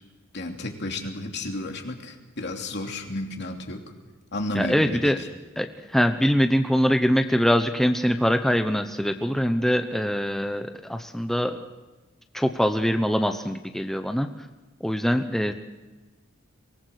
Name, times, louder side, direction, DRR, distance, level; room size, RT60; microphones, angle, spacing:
voice 1, 0.3-3.9 4.3-5.3, left 1 dB, 60° left, 3 dB, 2.9 m, -32 dB
voice 2, 4.5-5.2 5.6-11.6 12.3-14.3 14.8-15.5, equal, ahead, 6 dB, 0.9 m, -23 dB
24.0 x 19.0 x 6.5 m, 1.2 s
head